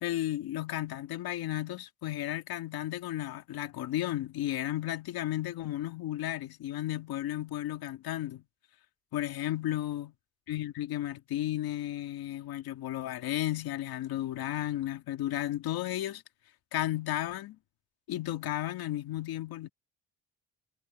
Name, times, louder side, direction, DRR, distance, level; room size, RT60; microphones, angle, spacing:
voice 1, 0.0-8.4 9.1-10.1 10.5-16.2 16.7-17.6 18.1-19.7, left 14 dB, 90° left, 2.1 m, -33 dB
cardioid pair, 120°, 36 cm